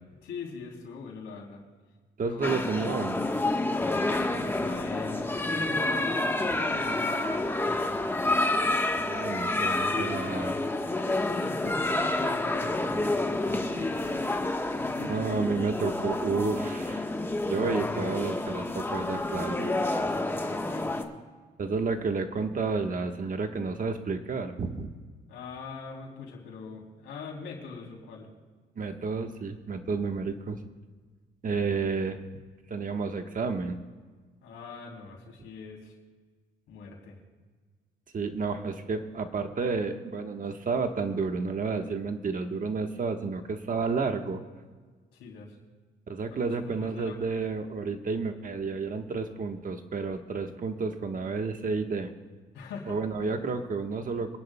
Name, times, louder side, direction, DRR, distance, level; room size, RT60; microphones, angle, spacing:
voice 1, 0.2-1.6 2.2-2.5 4.1-8.2 11.2-12.7 13.4-14.0 14.7-15.3 20.1-21.0 25.3-28.3 31.5-31.6 34.4-35.9 36.7-37.2 45.1-45.6 46.3-47.4 52.5-53.0 53.2-53.4, left 5 dB, 85° left, 0 dB, 3.1 m, -43 dB
voice 2, 2.2-3.3 9.0-10.6 15.1-17.1 17.4-19.7 21.6-24.9 28.8-30.6 31.4-32.2 32.7-33.8 38.1-44.4 46.1-52.1 52.9-54.4, right 4 dB, 45° right, 6 dB, 1.2 m, -31 dB
sound 1, 2.4-21.0, left 2 dB, 10° left, 1.2 m, -29 dB
28.0 x 10.5 x 2.2 m, 1.4 s
cardioid pair, 90°, 20 cm